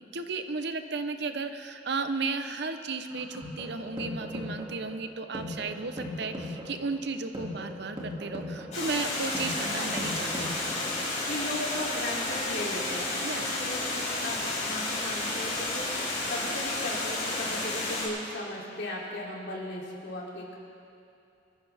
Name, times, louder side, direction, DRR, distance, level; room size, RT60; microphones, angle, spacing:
voice 1, 0.0-10.5 13.2-13.5, right 4 dB, 60° right, 8 dB, 0.8 m, -34 dB
sound 1, 3.1-11.1, left 1 dB, 25° right, 2.5 m, -39 dB
Water, 8.7-18.1, left 2 dB, 40° left, 4.6 m, -31 dB
voice 2, 9.6-10.0 11.2-20.6, left 1 dB, 60° left, -4 dB, 3.2 m, -37 dB
23.5 x 14.5 x 3.5 m, 2.6 s
head